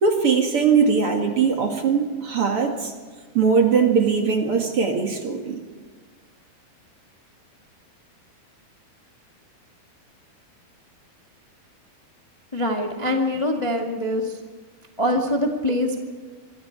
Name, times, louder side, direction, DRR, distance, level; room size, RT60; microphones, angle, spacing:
voice 1, 0.0-2.9 3.3-5.6, right 5 dB, 45° right, 3 dB, 2.4 m, -20 dB
voice 2, 12.5-14.3 15.0-16.0, left 1 dB, 25° left, 1 dB, 0.6 m, -23 dB
26.0 x 23.5 x 4.7 m, 1.4 s
omnidirectional pair, 4.4 m